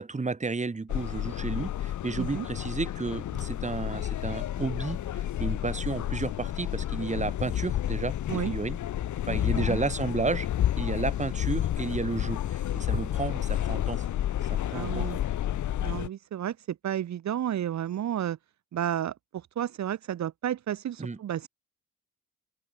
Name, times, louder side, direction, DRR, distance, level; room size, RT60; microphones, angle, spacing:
voice 1, 0.0-8.8 9.3-10.5 10.7-14.1 14.5-15.1 21.0-21.2, right 4 dB, 25° right, 3.6 m, -32 dB
sound 1, 0.9-16.1, left 11 dB, 75° left, 7.3 m, -30 dB
voice 2, 14.7-15.2 15.8-18.4 18.7-21.5, right 10 dB, 65° right, 2.8 m, -32 dB
cardioid pair, 90°, 30 cm